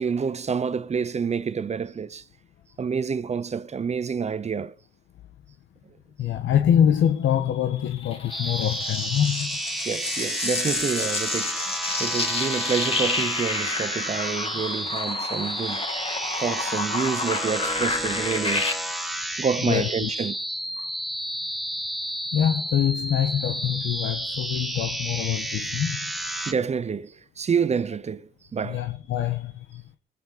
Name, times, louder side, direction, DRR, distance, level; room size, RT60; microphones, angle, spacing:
voice 1, 0.0-2.2 2.8-4.7 9.9-11.7 12.0-15.9 16.4-18.7 19.4-20.3 20.8-20.9 26.4-28.8, right 6 dB, 35° right, 0.8 m, -28 dB
voice 2, 6.2-9.9 12.2-12.3 19.6-20.1 22.3-26.1 28.6-29.8, left 10 dB, 75° left, 1.5 m, -25 dB
sound 1, 8.1-18.7, left 3 dB, 30° left, 3.2 m, -30 dB
sound 2, 8.3-26.5, right 1 dB, ahead, 3.1 m, -31 dB
20.0 x 9.4 x 5.2 m
cardioid pair, 90°, 20 cm